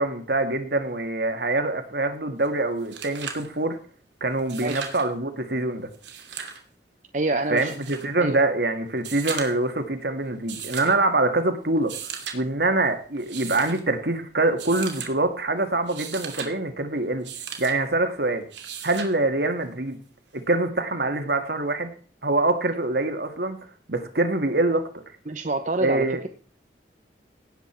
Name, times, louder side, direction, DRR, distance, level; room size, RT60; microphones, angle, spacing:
voice 1, 0.0-3.8 4.2-5.9 7.5-11.9 12.3-17.3 17.6-18.5 18.8-20.0 20.3-21.9 22.2-23.6 23.9-24.9 25.8-26.2, right 2 dB, 65° right, 7 dB, 2.0 m, -24 dB
sound 1, 2.4-2.5 2.8-3.5 4.4-5.1 5.9-6.6 7.6-8.1 9.0-9.7 10.5-11.0 11.8-12.4 13.2-13.8 14.6-15.1 15.7-16.5 17.2-17.8 18.5-19.1 20.5-20.6, right 7 dB, 90° right, 2.7 m, -36 dB
voice 2, 7.1-7.7 8.2-8.4 25.3-26.3, right 2 dB, 45° right, 6 dB, 0.9 m, -27 dB
17.5 x 8.1 x 4.5 m, 0.43 s
head